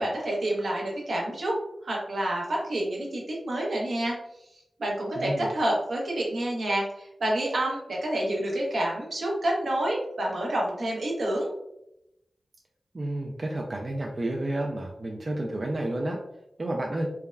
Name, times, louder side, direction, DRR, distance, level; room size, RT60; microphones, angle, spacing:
voice 1, 0.0-1.6 1.8-4.1 4.8-11.5, right 1 dB, 80° right, -2 dB, 0.7 m, -28 dB
voice 2, 5.2-5.5 12.9-16.2 16.6-17.1, right 1 dB, 45° right, 0 dB, 0.3 m, -30 dB
3.4 x 2.1 x 2.3 m, 0.83 s
wide cardioid pair, 70°, 0 cm